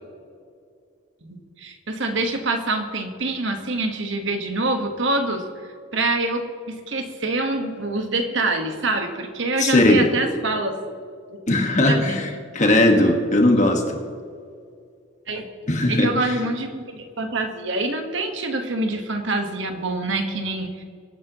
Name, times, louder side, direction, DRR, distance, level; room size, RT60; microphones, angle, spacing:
voice 1, 1.2-5.4 5.9-10.8 11.3-11.4 11.9-12.0 13.5-13.6 15.3-15.4 15.9-20.8, right 2 dB, 60° right, 5 dB, 1.5 m, -25 dB
voice 2, 9.6-10.1 11.5-13.8 15.7-16.1, left 1 dB, 35° left, 3 dB, 1.6 m, -18 dB
24.0 x 9.1 x 3.1 m, 2.3 s
head